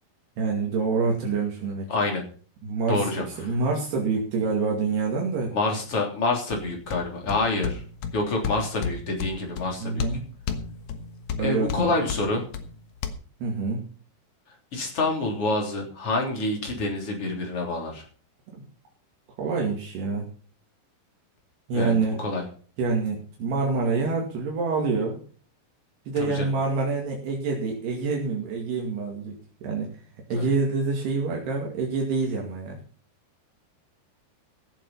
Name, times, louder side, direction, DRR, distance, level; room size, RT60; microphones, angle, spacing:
voice 1, 0.4-1.9 2.6-5.5 9.8-10.2 11.4-11.9 13.4-13.9 18.5-18.6 19.4-20.2 21.7-22.2 22.8-25.2 26.1-29.3 29.6-29.9 30.3-32.8, right 4 dB, 70° right, -1 dB, 4.2 m, -26 dB
voice 2, 1.9-2.2 2.9-3.5 5.5-7.8 8.1-10.1 11.4-12.4 14.7-18.0 21.7-22.4 26.2-26.5 30.3-30.5, left 2 dB, 35° left, 1 dB, 3.8 m, -27 dB
sound 1, 6.5-13.1, left 6 dB, 65° left, 1.8 m, -34 dB
16.5 x 7.6 x 5.6 m, 0.42 s
omnidirectional pair, 5.0 m